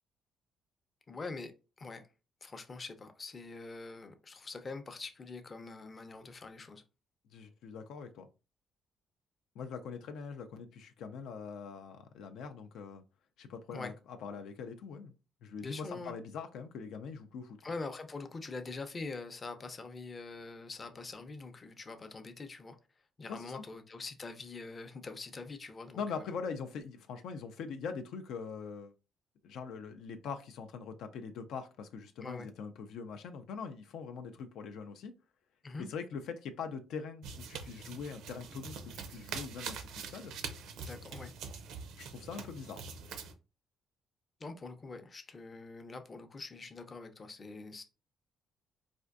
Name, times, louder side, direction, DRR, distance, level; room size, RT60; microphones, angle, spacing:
voice 1, 1.1-1.5 1.8-2.0 2.4-6.8 13.7-13.9 15.6-16.1 17.6-22.8 23.2-26.3 32.2-32.5 35.6-35.9 40.8-41.3 44.4-47.8, left 3 dB, 30° left, 0.5 m, -44 dB
voice 2, 7.3-8.3 9.6-13.0 13.4-15.1 15.4-17.6 23.3-23.6 25.9-28.9 29.4-35.1 35.9-40.3 42.0-42.8, left 5 dB, 80° left, 0.4 m, -42 dB
sound 1, 37.2-43.3, right 5 dB, 80° right, 0.5 m, -44 dB
4.2 x 2.5 x 2.5 m
cardioid pair, 110°, 0 cm